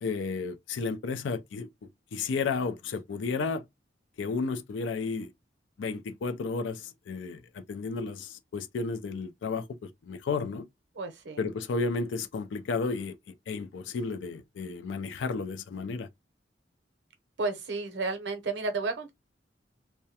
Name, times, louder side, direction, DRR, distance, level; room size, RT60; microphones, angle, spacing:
voice 1, 0.0-1.7 2.1-3.6 4.2-5.3 5.8-10.7 11.4-16.1, left 4 dB, 90° left, 0.4 m, -33 dB
voice 2, 10.9-11.5 17.4-19.1, right 3 dB, 70° right, 0.6 m, -32 dB
2.3 x 2.1 x 2.7 m
head